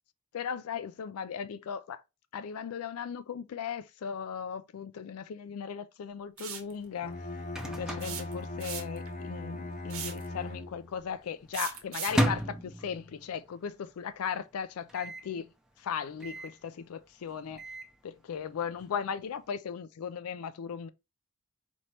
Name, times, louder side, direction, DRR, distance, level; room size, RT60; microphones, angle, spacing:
voice 1, 0.3-2.0 2.3-7.2 7.6-15.5 15.8-17.6 18.0-20.9, left 7 dB, 80° left, 0.4 m, -37 dB
sound 1, 6.4-6.7 8.0-9.1 9.9-10.3 11.5-12.3, right 9 dB, 75° right, 1.0 m, -38 dB
Microwave oven, 6.9-9.1 9.4-9.5 9.7-10.2 10.7-13.5 13.9-14.0 14.2-14.3 14.9-15.3 16.2-16.6 17.3-18.0, equal, 5° right, 0.5 m, -34 dB
Bowed string instrument, 7.0-11.0, left 2 dB, 35° left, 0.6 m, -39 dB
4.3 x 3.0 x 3.2 m
head